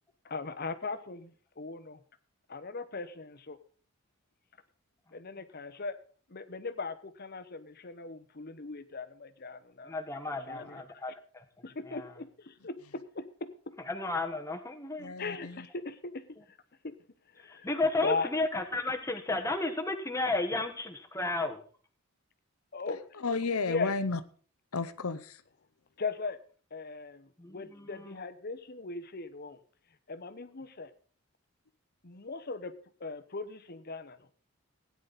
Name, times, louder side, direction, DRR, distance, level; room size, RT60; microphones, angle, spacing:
voice 1, 0.2-2.0 2.5-3.6 5.1-6.0 6.3-9.9 10.3-10.8 11.6-13.7 15.2-16.6 16.8-17.0 17.3-17.7 18.0-18.3 22.7-23.2 23.7-23.9 26.0-26.4 26.7-29.6 30.1-30.9 32.0-32.7 33.0-34.3, left 4 dB, 45° left, 12 dB, 1.0 m, -38 dB
voice 2, 9.9-11.4 11.9-12.1 13.9-15.1 17.5-21.6 27.4-27.9, left 2 dB, 15° left, 4 dB, 1.3 m, -33 dB
voice 3, 15.0-15.7 23.2-24.2 24.7-25.4, left 4 dB, 85° left, 11 dB, 0.8 m, -32 dB
17.0 x 9.7 x 4.1 m, 0.43 s
head